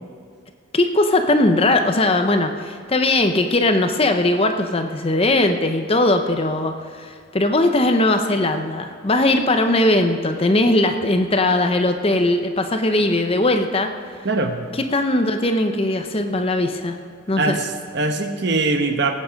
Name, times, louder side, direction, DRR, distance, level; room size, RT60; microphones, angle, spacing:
voice 1, 0.7-13.9 14.7-17.0 17.3-17.6, left 2 dB, 25° left, 6 dB, 0.7 m, -19 dB
voice 2, 14.2-14.6 17.4-19.1, right 3 dB, 55° right, 6 dB, 1.0 m, -22 dB
19.0 x 8.7 x 5.1 m, 2.3 s
head